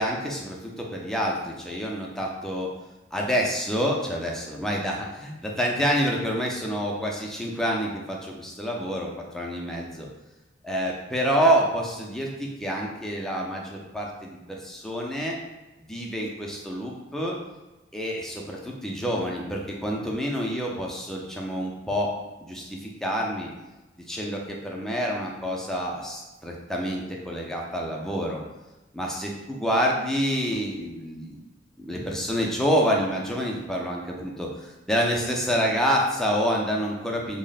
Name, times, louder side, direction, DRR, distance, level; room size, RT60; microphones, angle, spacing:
voice 1, 0.0-2.7 3.1-10.1 10.6-15.4 15.9-17.4 17.9-22.1 22.4-23.5 24.1-28.4 28.9-31.4 31.8-37.4, equal, 5° left, -2 dB, 0.5 m, -27 dB
3.4 x 2.1 x 3.9 m, 1.1 s
head